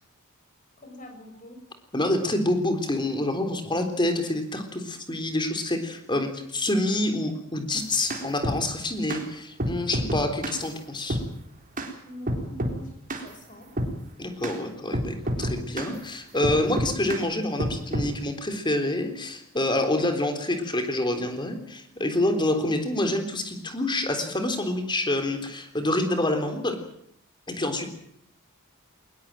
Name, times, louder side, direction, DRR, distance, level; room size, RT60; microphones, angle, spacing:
voice 1, 0.8-1.6 12.0-13.9, left 1 dB, 35° left, 5 dB, 6.5 m, -44 dB
voice 2, 1.9-11.2 14.2-26.8 27.5-27.9, left 1 dB, 20° left, 7 dB, 3.7 m, -27 dB
sound 1, 7.8-8.6 9.1-9.2 9.6-10.6 11.1-11.3 11.8-11.9 12.3-12.8 13.1-13.3 13.8-14.0 14.4-14.6 14.9-15.9 16.4-17.2 17.6-18.1, right 1 dB, 40° right, 3.9 m, -28 dB
21.5 x 20.0 x 9.0 m, 0.71 s
head